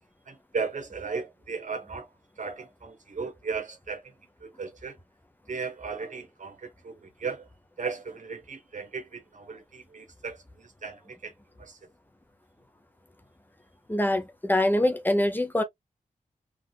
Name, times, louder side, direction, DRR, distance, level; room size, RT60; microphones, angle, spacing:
voice 1, 0.3-2.1 2.4-4.0 4.4-5.0 5.5-7.5 7.8-11.3 11.6-11.8, right 5 dB, 60° right, 1.1 m, -36 dB
voice 2, 13.9-15.6, left 1 dB, 15° left, 0.7 m, -24 dB
3.7 x 2.5 x 2.3 m
wide cardioid pair, 90°, 14 cm